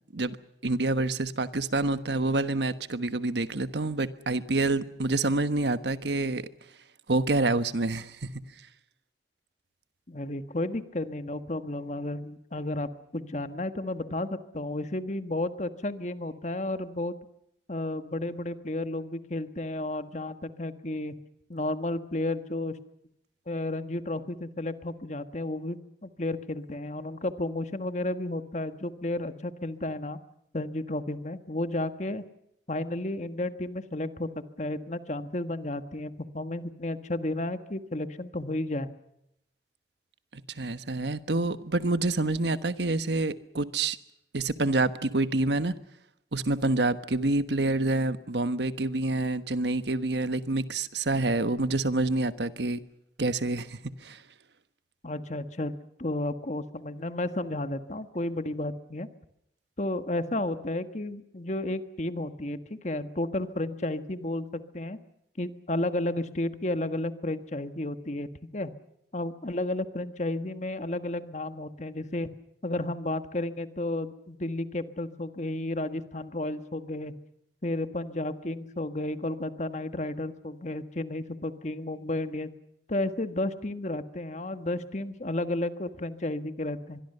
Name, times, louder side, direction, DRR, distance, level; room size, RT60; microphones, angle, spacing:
voice 1, 0.6-6.4 7.1-8.3 40.3-44.0 44.3-45.7 46.3-52.8 53.2-54.2, right 2 dB, 80° right, 12 dB, 1.3 m, -27 dB
voice 2, 10.1-17.1 17.7-21.2 21.5-22.8 23.5-30.2 30.5-32.2 32.7-34.3 34.6-38.9 55.0-55.7 56.0-59.1 59.8-64.5 64.7-65.0 65.4-68.3 68.5-68.7 69.1-72.3 72.6-77.1 77.6-82.5 82.9-87.0, left 1 dB, 40° left, 10 dB, 1.5 m, -32 dB
25.5 x 22.0 x 6.8 m, 0.80 s
head